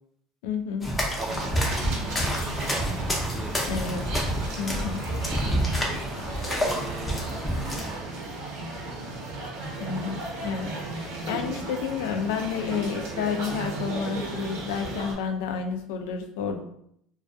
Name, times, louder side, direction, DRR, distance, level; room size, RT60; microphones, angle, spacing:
voice 1, 0.4-0.9 3.7-4.1 4.6-5.0 9.8-16.6, left 6 dB, 85° left, 6 dB, 0.3 m, -30 dB
sound 1, 0.8-8.0, equal, 15° left, 0.6 m, -28 dB
voice 2, 1.1-3.0 3.3-4.1 5.4-5.7 6.5-8.4, right 4 dB, 30° right, 5 dB, 0.4 m, -41 dB
sound 2, 1.2-15.1, right 2 dB, 80° right, 0.8 m, -35 dB
2.2 x 2.2 x 2.5 m, 0.71 s
supercardioid pair, 120°, 0 cm